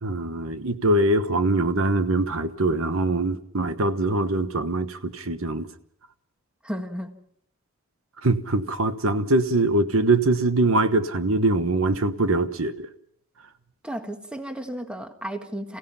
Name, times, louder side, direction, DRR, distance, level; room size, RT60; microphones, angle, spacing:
voice 1, 0.0-5.7 8.2-12.9, right 2 dB, 80° right, 10 dB, 1.2 m, -23 dB
voice 2, 6.6-7.1 13.8-15.8, equal, 5° right, 6 dB, 1.6 m, -33 dB
28.5 x 16.5 x 5.8 m, 0.68 s
head